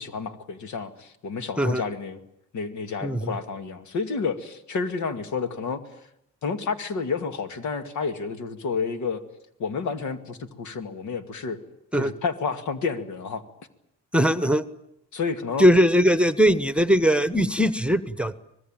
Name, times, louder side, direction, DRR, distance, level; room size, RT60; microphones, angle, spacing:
voice 1, 0.0-2.2 2.5-5.8 6.4-9.2 9.6-11.6 11.9-13.4 15.1-15.7, left 5 dB, 70° left, 8 dB, 2.4 m, -30 dB
voice 2, 3.0-3.4 11.9-12.1 14.1-14.6 15.6-18.4, equal, 5° right, 13 dB, 1.1 m, -20 dB
25.5 x 19.5 x 9.0 m, 0.78 s
cardioid pair, 90°, 30 cm